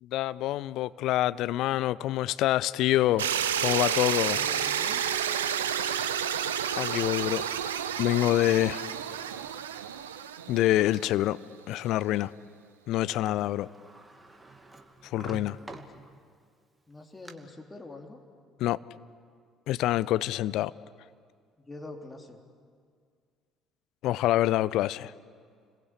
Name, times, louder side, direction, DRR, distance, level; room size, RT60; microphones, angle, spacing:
voice 1, 0.0-3.3 3.6-4.4 6.8-7.4 8.0-8.9 10.5-11.4 11.7-12.3 12.9-13.7 15.0-15.6 18.6-18.8 19.7-20.7 24.0-25.1, left 15 dB, 55° left, 17 dB, 0.6 m, -26 dB
sound 1, 3.2-11.2, right 9 dB, 75° right, 0.8 m, -30 dB
voice 2, 4.3-5.0 15.6-15.8 16.9-18.2 21.6-22.4, left 2 dB, 15° left, 2 dB, 3.7 m, -45 dB
Sliding door, 8.4-11.0 11.6-11.7 13.0-13.1 13.3-16.4 16.9-17.3, right 3 dB, 15° right, 2.4 m, -49 dB
30.0 x 21.5 x 8.5 m, 2.1 s
figure-of-eight pair, 50°, 0 cm